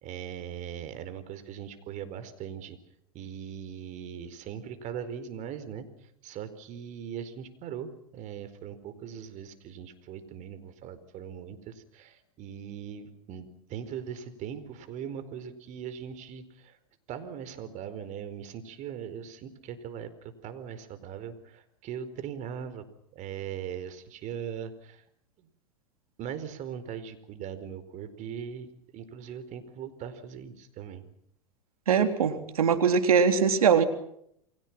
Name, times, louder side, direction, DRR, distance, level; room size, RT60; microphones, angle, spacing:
voice 1, 0.0-2.8 3.1-5.9 6.2-16.8 17.1-22.8 23.1-25.0 25.4-25.5 26.2-31.0, right 8 dB, 40° right, 12 dB, 4.6 m, -40 dB
voice 2, 31.9-33.8, right 6 dB, 80° right, 7 dB, 3.7 m, -22 dB
30.0 x 23.5 x 6.1 m, 0.72 s
hypercardioid pair, 105°, 18 cm